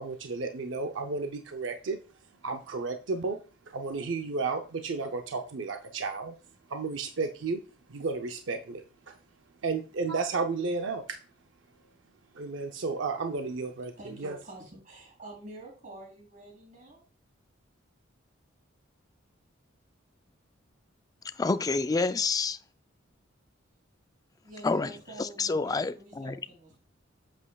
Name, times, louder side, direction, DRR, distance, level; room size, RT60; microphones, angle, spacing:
voice 1, 0.0-2.0 2.4-3.4 3.7-6.3 6.7-7.6 7.9-9.1 9.6-11.2 12.4-13.9 14.2-14.4, right 4 dB, 70° right, 0.6 m, -32 dB
voice 2, 14.0-17.0 24.4-26.8, right 1 dB, 40° right, 3.3 m, -47 dB
voice 3, 21.4-22.6 24.6-24.9 25.2-26.4, left 3 dB, 20° left, 0.3 m, -28 dB
8.3 x 7.6 x 2.3 m
head